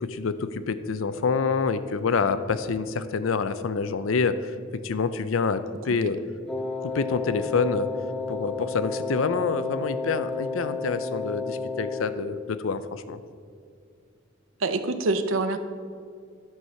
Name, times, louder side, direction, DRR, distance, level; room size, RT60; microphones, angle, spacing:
voice 1, 0.0-4.5 4.8-6.2 6.8-7.9 8.3-13.2, left 5 dB, 90° left, 12 dB, 0.5 m, -27 dB
Wind instrument woodwind instrument, 6.5-12.2, left 4 dB, 5° left, 0.5 m, -32 dB
voice 2, 14.6-15.6, right 3 dB, 90° right, 9 dB, 0.7 m, -25 dB
10.5 x 4.7 x 5.6 m, 2.2 s
head